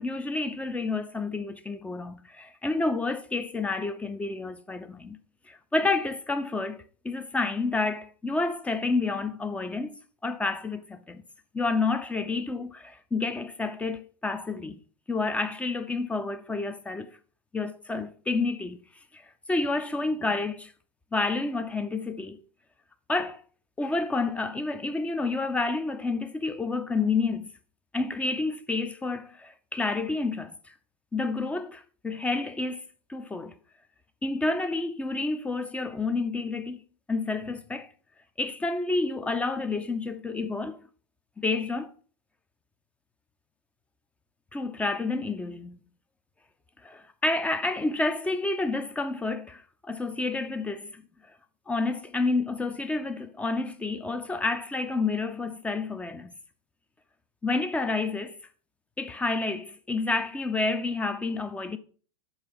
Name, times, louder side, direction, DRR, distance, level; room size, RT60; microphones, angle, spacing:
voice 1, 0.0-5.2 5.5-10.0 10.2-11.2 11.5-14.8 15.1-17.1 17.5-18.8 19.5-20.7 21.1-22.4 23.1-23.4 23.8-27.5 27.9-30.7 31.1-32.8 33.1-33.5 34.2-36.8 37.1-37.9 38.4-40.8 41.4-41.9 44.5-45.8 46.8-51.0 51.7-56.3 57.4-58.3 59.0-61.8, left 3 dB, 10° left, 0.5 m, -29 dB
6.7 x 5.5 x 5.8 m
figure-of-eight pair, 90°, 15 cm